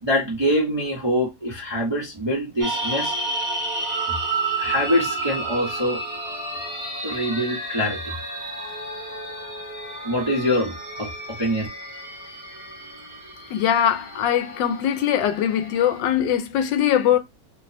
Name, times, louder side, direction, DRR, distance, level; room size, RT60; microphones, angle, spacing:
voice 1, 0.0-3.1 4.6-6.0 7.0-8.2 10.0-11.7, equal, 35° right, 0.4 m, -24 dB
sound 1, 2.6-16.0, right 2 dB, 15° right, 0.8 m, -31 dB
voice 2, 13.5-17.2, left 10 dB, 80° left, 1.2 m, -21 dB
3.1 x 2.0 x 4.0 m
omnidirectional pair, 2.0 m